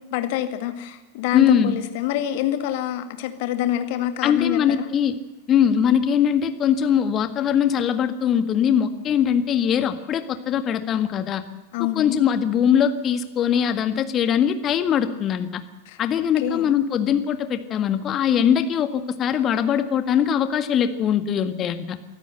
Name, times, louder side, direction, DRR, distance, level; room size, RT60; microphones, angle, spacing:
voice 1, 0.1-4.9 11.7-12.2 15.9-16.0 16.4-16.7, left 11 dB, 50° left, 8 dB, 2.1 m, -26 dB
voice 2, 1.3-1.8 4.2-5.2 5.5-11.4 11.9-15.6 16.0-22.0, left 8 dB, 30° left, 9 dB, 1.7 m, -21 dB
24.5 x 13.5 x 7.9 m, 1.1 s
figure-of-eight pair, 90°, 0 cm